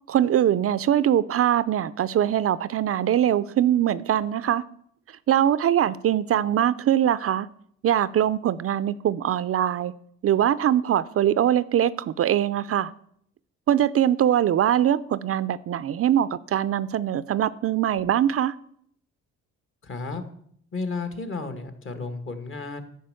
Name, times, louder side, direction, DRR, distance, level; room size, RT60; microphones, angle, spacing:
voice 1, 0.1-4.6 5.3-7.5 7.8-9.9 10.2-12.9 13.7-18.5, right 10 dB, 50° right, 15 dB, 0.5 m, -22 dB
voice 2, 19.8-20.2 20.7-22.8, left 3 dB, 40° left, 8 dB, 1.6 m, -32 dB
10.0 x 5.4 x 7.6 m, 0.67 s
cardioid pair, 90°, 30 cm